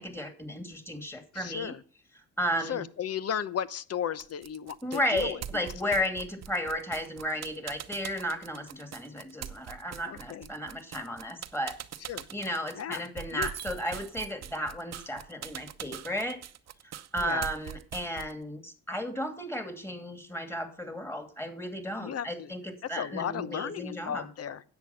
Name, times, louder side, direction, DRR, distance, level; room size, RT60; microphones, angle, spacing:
voice 1, 0.0-1.7 2.4-2.8 4.8-11.8 12.3-16.4 17.1-24.3, equal, 10° left, 7 dB, 2.5 m, -34 dB
voice 2, 1.3-1.8 2.6-5.9 10.0-10.5 12.1-12.3 12.7-13.5 17.2-17.5 22.0-22.5 22.9-24.6, left 9 dB, 55° left, 16 dB, 0.9 m, -35 dB
sound 1, 4.2-18.4, right 9 dB, 60° right, 0.9 m, -42 dB
10.5 x 8.0 x 5.7 m, 0.43 s
cardioid pair, 90°, 30 cm